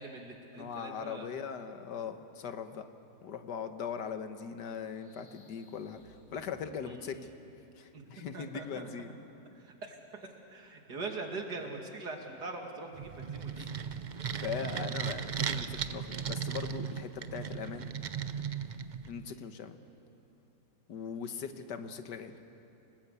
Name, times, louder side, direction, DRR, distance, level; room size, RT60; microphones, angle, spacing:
voice 1, 0.0-1.5 6.8-7.3 7.9-8.9 9.5-13.7 19.2-19.4 21.3-21.4, right 3 dB, 70° right, 2 dB, 2.9 m, -43 dB
voice 2, 0.6-2.9 3.2-7.2 7.8-9.1 13.5-13.8 14.4-17.9 19.1-19.8 20.9-22.4, left 7 dB, 85° left, 8 dB, 1.8 m, -40 dB
sound 1, 4.7-7.5, left 1 dB, 55° left, 2.8 m, -63 dB
sound 2, 12.9-19.3, right 7 dB, 55° right, 0.5 m, -37 dB
29.0 x 19.5 x 8.2 m, 2.9 s
omnidirectional pair, 1.8 m